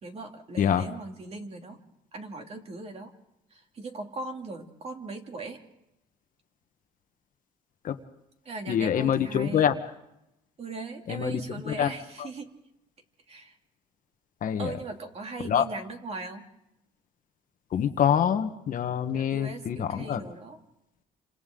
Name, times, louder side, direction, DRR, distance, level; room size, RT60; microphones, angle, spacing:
voice 1, 0.0-1.8 2.1-3.1 3.5-5.6 8.4-9.7 10.6-12.5 13.3-13.5 14.6-16.5 19.1-20.6, right 3 dB, 35° right, 3 dB, 2.8 m, -39 dB
voice 2, 8.7-9.7 11.1-11.4 11.7-11.9 12.2-12.3 14.4-14.7 15.4-15.6 17.7-20.2, left 9 dB, 50° left, 8 dB, 1.4 m, -25 dB
29.0 x 26.5 x 3.9 m, 0.85 s
cardioid pair, 110°, 17 cm